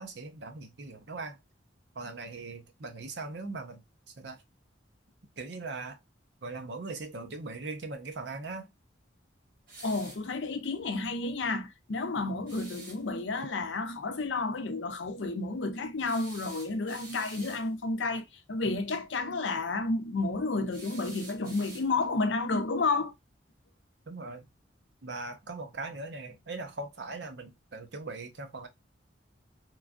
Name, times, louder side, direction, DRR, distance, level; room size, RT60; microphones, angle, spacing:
voice 1, 0.0-1.4 2.0-3.8 4.2-4.4 5.4-6.0 6.4-8.7 24.1-24.5 25.0-28.7, right 3 dB, 65° right, 0.7 m, -40 dB
sound 1, 9.7-10.3 12.5-13.0 16.0-17.7 20.7-22.1, right 2 dB, 45° right, 1.3 m, -48 dB
voice 2, 9.8-23.1, left 3 dB, 80° left, 0.5 m, -31 dB
3.1 x 2.2 x 2.5 m
head